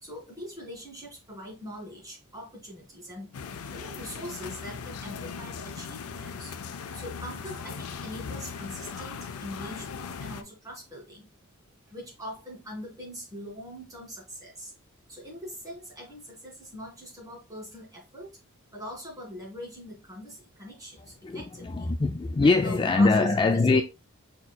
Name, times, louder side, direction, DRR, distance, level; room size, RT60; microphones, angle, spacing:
voice 1, 0.0-3.3 3.7-6.5 6.9-11.3 11.9-14.7 15.1-18.4 18.7-21.9 22.4-23.3 23.7-23.8, equal, 15° right, 2.1 m, -42 dB
sound 1, 3.3-10.4, left 6 dB, 85° left, 0.5 m, -39 dB
voice 2, 21.2-23.8, left 3 dB, 20° left, 0.3 m, -23 dB
5.0 x 4.3 x 2.2 m
head